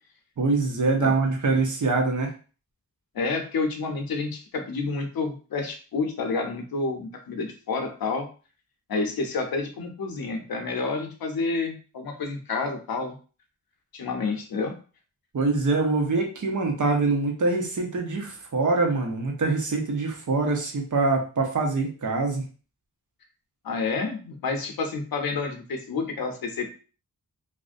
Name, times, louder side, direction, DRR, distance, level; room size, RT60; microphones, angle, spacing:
voice 1, 0.4-2.3 15.3-22.5, right 3 dB, 60° right, 1 dB, 0.7 m, -24 dB
voice 2, 3.1-8.3 8.9-13.2 13.9-14.7 23.6-26.7, left 4 dB, 80° left, 4 dB, 0.6 m, -29 dB
2.4 x 2.1 x 2.4 m, 0.37 s
wide cardioid pair, 100°, 35 cm